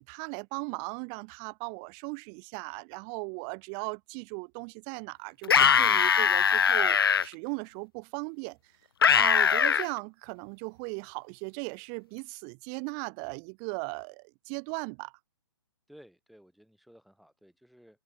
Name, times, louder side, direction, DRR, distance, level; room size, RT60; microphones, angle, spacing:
voice 1, 0.0-8.6 9.1-15.1, right 40 dB or more, 30° right, 1.7 m, -38 dB
sound 1, 5.4-7.2 9.0-9.9, left 7 dB, 65° left, 0.6 m, -21 dB
voice 2, 15.9-18.0, equal, ahead, 6.7 m, -56 dB
figure-of-eight pair, 125°, 13 cm